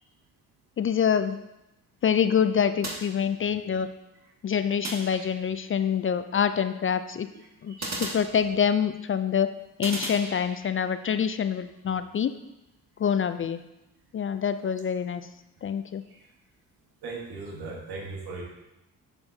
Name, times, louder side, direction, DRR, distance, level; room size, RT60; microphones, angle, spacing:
voice 1, 0.8-1.4 2.0-3.9 4.4-7.3 7.6-9.5 9.8-12.3 13.0-13.6 14.1-15.2 15.6-16.0, left 7 dB, 35° left, 11 dB, 0.4 m, -26 dB
sound 1, 2.8-3.8 4.8-5.7 7.8-8.9 9.8-10.9, right 2 dB, 45° right, 1.7 m, -37 dB
voice 2, 7.3-8.0 16.1-16.3 17.0-18.4, right 3 dB, 80° right, -1 dB, 1.7 m, -39 dB
6.9 x 6.8 x 2.8 m, 0.92 s
supercardioid pair, 60°, 37 cm